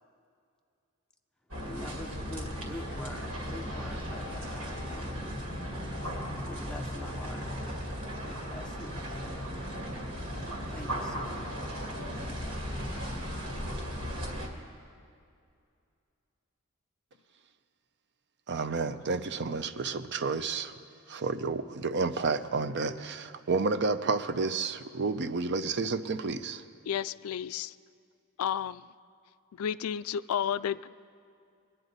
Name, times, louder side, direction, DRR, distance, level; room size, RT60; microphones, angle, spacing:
sound 1, 1.5-14.5, equal, 75° right, 2.2 m, -36 dB
voice 1, 1.7-5.4 6.4-7.5 8.2-9.1 10.7-11.8, left 1 dB, 5° left, 2 dB, 0.5 m, -46 dB
voice 2, 18.5-20.7 21.1-26.6, right 4 dB, 55° right, 11 dB, 0.6 m, -30 dB
voice 3, 26.9-27.7 28.4-28.8 29.6-30.9, left 8 dB, 75° left, 15 dB, 0.3 m, -32 dB
23.5 x 9.9 x 4.0 m, 2.4 s
head